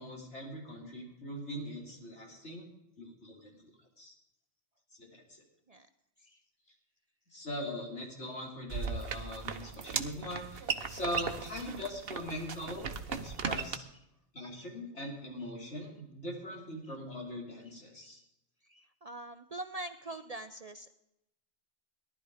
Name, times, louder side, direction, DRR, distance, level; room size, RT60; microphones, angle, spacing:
voice 1, 0.0-2.7 3.0-3.6 4.0-4.1 5.0-5.4 7.3-13.8 14.3-18.2, equal, 70° left, -1 dB, 4.0 m, -41 dB
sound 1, 8.7-13.8, right 6 dB, 55° right, 1.1 m, -37 dB
voice 2, 18.7-20.9, right 2 dB, 40° right, 9 dB, 0.6 m, -43 dB
18.0 x 12.0 x 5.0 m, 0.85 s
omnidirectional pair, 1.2 m